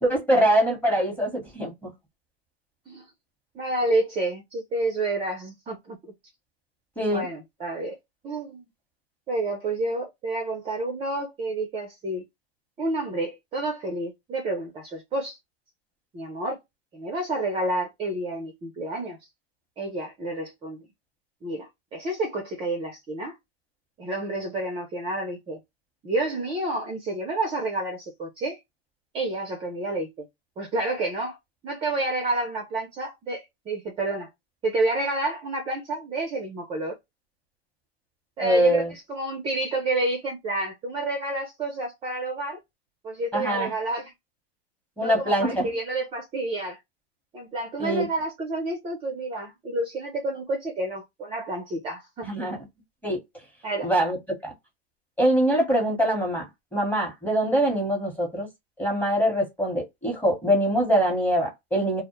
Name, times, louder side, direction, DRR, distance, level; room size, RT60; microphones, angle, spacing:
voice 1, 0.0-1.9 7.0-7.3 38.4-38.9 43.3-43.7 45.0-45.7 47.8-48.0 52.2-52.6 53.0-53.2 53.8-54.2 54.4-54.5 55.2-56.5 56.7-58.5 58.8-62.0, right 1 dB, 5° left, 0.9 m, -23 dB
voice 2, 3.5-6.1 7.1-7.9 8.2-8.7 9.3-12.2 12.8-15.4 16.1-16.6 16.9-19.2 19.8-20.8 21.4-23.3 24.0-25.6 26.0-28.6 29.1-30.3 30.6-31.4 31.6-34.3 34.6-37.0 38.4-42.6 43.0-44.1 45.0-46.8 47.3-52.5 53.6-53.9, right 2 dB, 15° right, 0.5 m, -29 dB
2.1 x 2.1 x 2.9 m
hypercardioid pair, 125°, 32 cm